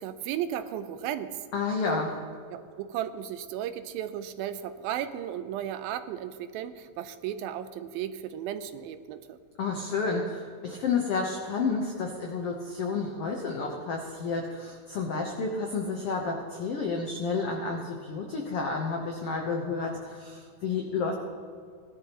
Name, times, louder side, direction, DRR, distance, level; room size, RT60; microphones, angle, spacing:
voice 1, 0.0-1.4 2.5-9.4, right 10 dB, 85° right, 11 dB, 2.4 m, -35 dB
voice 2, 1.5-2.1 9.6-21.1, left 4 dB, 85° left, 1 dB, 1.3 m, -30 dB
17.5 x 12.0 x 3.0 m, 2.3 s
omnidirectional pair, 4.2 m